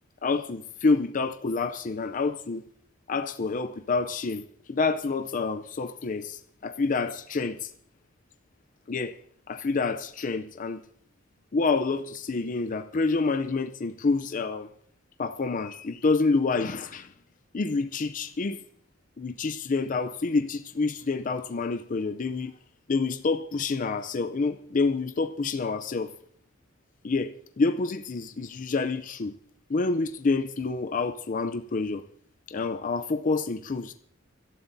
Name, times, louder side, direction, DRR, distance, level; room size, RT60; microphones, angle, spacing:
voice 1, 0.2-2.6 3.1-7.7 8.9-9.2 9.5-10.8 11.5-14.7 15.2-17.1 17.5-18.6 19.2-22.6 22.9-26.1 27.0-29.3 29.7-32.0 32.5-33.9, left 4 dB, 40° left, 0.5 m, -28 dB
24.5 x 12.5 x 2.7 m
head